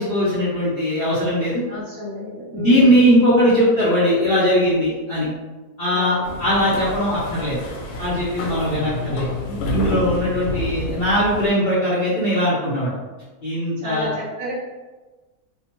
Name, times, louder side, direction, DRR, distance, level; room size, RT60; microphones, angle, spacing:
voice 1, 0.0-1.6 2.5-5.3 5.8-7.6 8.0-12.9 13.4-14.1, equal, 55° left, -10 dB, 0.7 m, -19 dB
voice 2, 1.7-3.1 5.9-6.2 8.5-8.8 13.8-14.5, left 1 dB, 60° right, -6 dB, 1.2 m, -31 dB
sound 1, 6.2-11.5, left 2 dB, 85° left, 1.1 m, -29 dB
2.8 x 2.2 x 2.9 m, 1.2 s
omnidirectional pair, 1.6 m